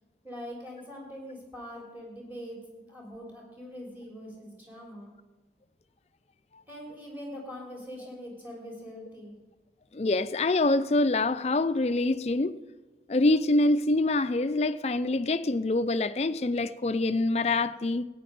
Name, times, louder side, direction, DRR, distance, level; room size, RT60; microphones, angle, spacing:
voice 1, 0.2-5.1 6.7-9.3, equal, 10° right, 3.6 m, -43 dB
voice 2, 9.9-12.5 13.1-18.0, left 2 dB, 35° left, 0.4 m, -25 dB
14.5 x 9.4 x 5.3 m
head